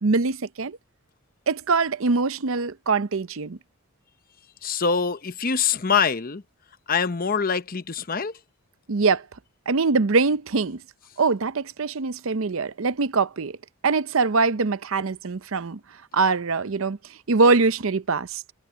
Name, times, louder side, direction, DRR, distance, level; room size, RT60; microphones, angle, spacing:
voice 1, 0.0-0.8 1.5-3.6 8.9-9.3 9.7-10.8 11.2-13.6 13.8-15.8 16.1-17.0 17.3-18.4, right 4 dB, 65° right, 0.6 m, -23 dB
voice 2, 4.6-6.4 6.9-8.4, left 6 dB, 40° left, 0.8 m, -24 dB
head